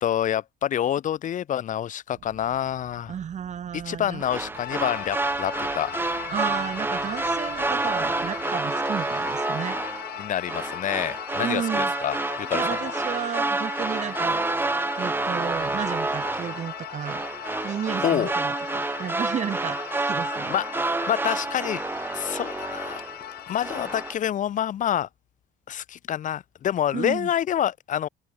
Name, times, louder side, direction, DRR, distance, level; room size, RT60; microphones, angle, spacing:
voice 1, 0.0-3.1 3.7-5.9 10.2-12.9 18.0-18.3 20.5-21.8 22.1-23.0 23.5-25.1 25.7-28.1, left 10 dB, 50° left, 1.0 m, -27 dB
sound 1, 2.1-8.4, right 13 dB, 65° right, 7.1 m, -51 dB
voice 2, 3.1-4.2 6.3-9.8 11.4-11.9 12.5-14.4 15.0-17.3 17.6-19.8 20.1-20.5 26.9-27.3, right 8 dB, 45° right, 2.1 m, -32 dB
sound 2, 4.2-23.3 23.6-24.1, right 2 dB, 10° right, 0.9 m, -29 dB
sound 3, 4.5-24.1, left 13 dB, 65° left, 2.2 m, -38 dB
open air
cardioid pair, 110°, 17 cm